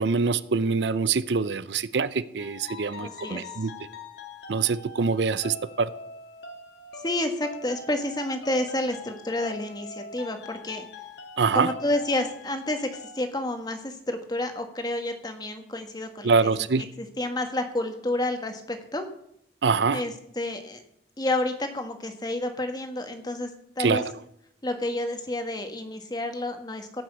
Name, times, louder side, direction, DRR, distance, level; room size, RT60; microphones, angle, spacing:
voice 1, 0.0-3.7 4.5-5.9 11.4-11.7 16.2-16.8 19.6-20.0 23.8-24.1, right 4 dB, 75° right, 15 dB, 0.6 m, -24 dB
sound 1, 2.4-13.3, left 3 dB, 70° left, 2.1 m, -43 dB
voice 2, 3.0-3.7 7.0-10.8 11.5-16.5 17.0-19.1 19.9-20.8 21.2-23.5 23.7-24.0 24.6-27.0, left 1 dB, 20° left, 6 dB, 1.5 m, -30 dB
17.0 x 6.2 x 8.1 m, 0.74 s
head